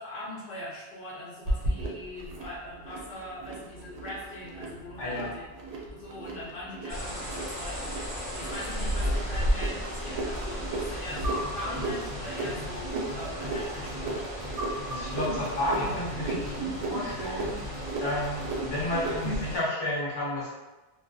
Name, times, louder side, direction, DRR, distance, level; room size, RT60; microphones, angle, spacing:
voice 1, 0.0-5.4 5.9-14.3, left 1 dB, 65° left, -6 dB, 0.7 m, -41 dB
sound 1, 1.5-19.5, right 1 dB, 85° right, 0.8 m, -35 dB
sound 2, 6.9-19.6, equal, 20° right, 0.6 m, -37 dB
sound 3, 11.1-19.6, equal, 35° right, 1.1 m, -38 dB
voice 2, 14.9-17.6 18.0-20.5, left 1 dB, 30° left, -7 dB, 0.7 m, -31 dB
2.4 x 2.2 x 2.3 m, 1.1 s
omnidirectional pair, 1.0 m